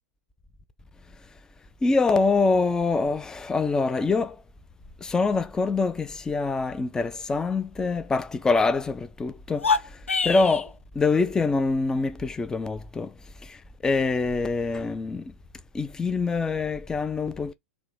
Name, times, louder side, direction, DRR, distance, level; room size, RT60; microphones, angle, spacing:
voice 1, 1.8-4.4 5.0-9.7 10.2-13.1 13.4-13.6 13.8-15.3 15.7-17.5, left 4 dB, 10° left, 0.4 m, -25 dB
sound 1, 9.5-10.7, left 5 dB, 80° left, 0.4 m, -25 dB
2.9 x 2.6 x 3.2 m
figure-of-eight pair, 100°, 7 cm